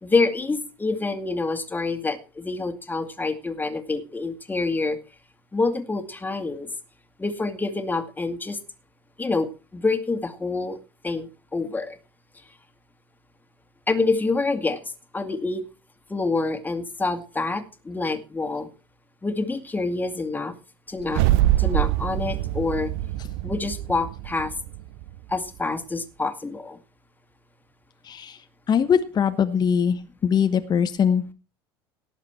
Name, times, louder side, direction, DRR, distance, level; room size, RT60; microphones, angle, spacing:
voice 1, 0.0-5.0 5.5-6.7 7.2-8.6 9.2-10.8 11.0-12.0 13.9-14.8 15.1-15.6 16.1-18.7 19.2-20.5 20.9-21.2 21.6-22.9 23.4-24.5 25.3-26.8, left 3 dB, 15° left, 8 dB, 2.1 m, -27 dB
sound 1, 21.0-25.4, right 15 dB, 60° right, 0.6 m, -24 dB
voice 2, 28.0-28.4 28.7-31.3, left 7 dB, 30° left, 8 dB, 1.1 m, -22 dB
18.0 x 7.2 x 4.4 m, 0.33 s
figure-of-eight pair, 70°, 13 cm